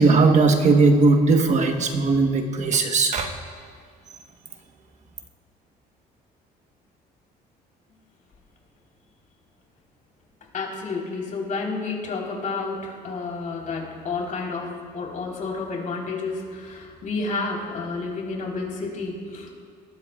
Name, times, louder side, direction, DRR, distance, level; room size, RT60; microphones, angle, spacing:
voice 1, 0.0-3.3, right 3 dB, 45° right, 4 dB, 1.3 m, -18 dB
voice 2, 10.5-19.5, left 3 dB, 50° left, -1 dB, 4.1 m, -30 dB
20.5 x 15.5 x 2.5 m, 2.2 s
cardioid pair, 110°, 17 cm